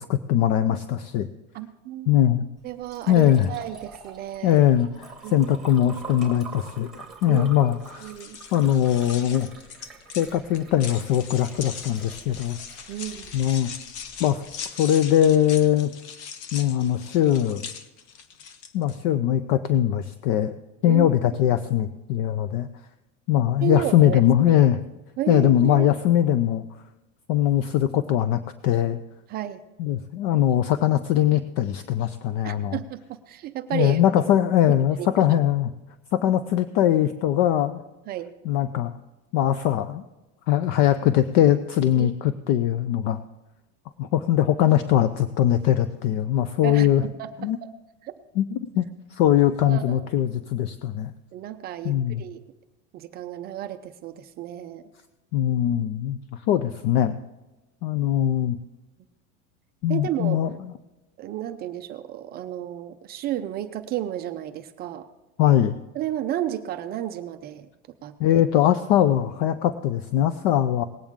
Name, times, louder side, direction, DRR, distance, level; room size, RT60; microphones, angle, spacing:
voice 1, 0.1-1.3 2.1-2.5 3.1-3.5 4.4-6.9 7.2-8.1 8.5-9.5 10.2-12.6 13.3-13.7 14.2-14.4 14.8-15.9 16.5-17.7 18.7-20.5 20.8-22.7 23.3-24.8 25.3-26.6 27.3-29.0 29.8-32.8 33.7-35.7 36.1-37.8 38.5-39.0 39.3-40.0 40.5-43.2 44.0-47.0 47.4-47.6 48.4-48.5 48.8-48.9 49.1-51.1 51.8-52.2 55.3-56.2 56.5-57.2 57.8-58.6 59.8-60.7 65.4-65.8 68.2-70.8, left 11 dB, 50° left, 12 dB, 0.5 m, -21 dB
voice 2, 1.5-2.1 2.6-4.6 5.2-5.5 7.3-7.8 8.0-8.4 12.9-13.3 20.9-21.1 23.6-24.6 25.2-25.9 29.3-29.6 32.4-34.0 34.7-35.4 38.1-38.3 42.0-42.1 46.6-47.7 48.0-48.1 49.6-50.1 51.3-52.4 52.9-54.9 59.9-60.4 61.2-65.1 65.9-67.7 68.0-68.4, right 12 dB, 25° right, 8 dB, 0.4 m, -32 dB
Liquid, 2.6-14.6, right 4 dB, ahead, 2.1 m, -46 dB
sound 1, 7.8-19.0, left 7 dB, 65° left, 1.1 m, -40 dB
19.0 x 8.9 x 3.6 m, 1.0 s
supercardioid pair, 155°, 37 cm